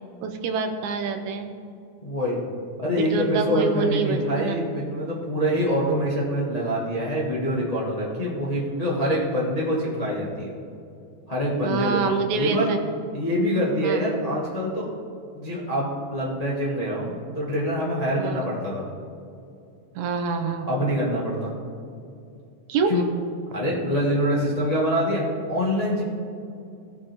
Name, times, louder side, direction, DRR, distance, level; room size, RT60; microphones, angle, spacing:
voice 1, 0.2-1.5 3.0-4.6 11.6-12.8 13.8-14.1 18.2-18.5 20.0-20.7 22.7-23.0, right 5 dB, 75° right, 6 dB, 2.1 m, -26 dB
voice 2, 2.0-2.4 2.8-10.5 11.3-12.0 12.3-12.7 13.1-14.9 15.3-18.8 20.7-21.5 22.9-23.0 23.5-26.0, equal, 75° left, -5 dB, 0.3 m, -25 dB
17.5 x 7.0 x 3.5 m, 2.6 s
omnidirectional pair, 3.6 m